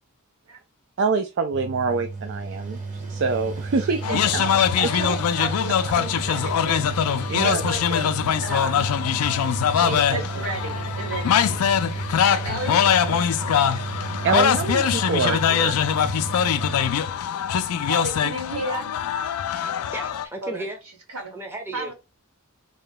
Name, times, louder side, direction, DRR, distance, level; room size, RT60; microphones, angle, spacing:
voice 1, 1.0-4.5 7.3-7.6 9.8-10.2 14.2-15.8, right 4 dB, 55° right, 0.4 m, -25 dB
Mechanical fan, 1.5-16.9, right 3 dB, 35° right, 1.0 m, -32 dB
voice 2, 3.8-6.8 7.3-8.1 8.4-8.9 9.7-11.6 12.3-13.2 17.9-19.0 20.4-20.6 21.1-21.3 21.7-21.9, right 1 dB, 90° right, 1.7 m, -33 dB
sound 1, 4.0-20.3, left 8 dB, 90° left, 0.4 m, -23 dB
voice 3, 19.9-20.8 21.3-21.9, right 1 dB, 10° right, 0.6 m, -34 dB
3.7 x 2.2 x 3.8 m
head